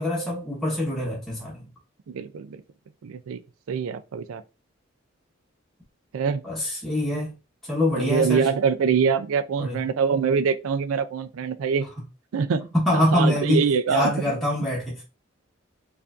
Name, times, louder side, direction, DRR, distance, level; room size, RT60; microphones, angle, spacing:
voice 1, 0.0-1.7 6.4-7.3 7.7-8.5 9.6-9.8 12.7-13.6 13.9-15.0, left 1 dB, ahead, 1.1 m, -24 dB
voice 2, 2.1-2.6 3.0-3.4 3.7-4.4 6.1-6.4 8.0-11.9 12.3-14.1, right 6 dB, 85° right, 0.4 m, -24 dB
4.6 x 2.5 x 2.4 m
head